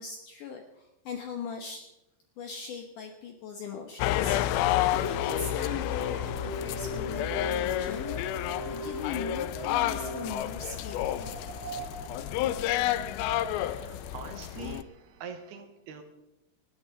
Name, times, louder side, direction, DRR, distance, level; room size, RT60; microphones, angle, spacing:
voice 1, 0.0-1.9 2.4-11.3, left 6 dB, 75° left, 4 dB, 1.9 m, -40 dB
sound 1, 4.0-14.8, left 13 dB, 90° left, 2.1 m, -30 dB
Keyboard (musical), 4.9-10.3, left 1 dB, 35° right, 5.1 m, -38 dB
Wind, 5.4-14.1, right 2 dB, ahead, 5.5 m, -45 dB
voice 2, 13.6-16.0, right 6 dB, 70° right, 7 dB, 2.9 m, -44 dB
19.5 x 13.0 x 3.9 m, 0.95 s
omnidirectional pair, 5.0 m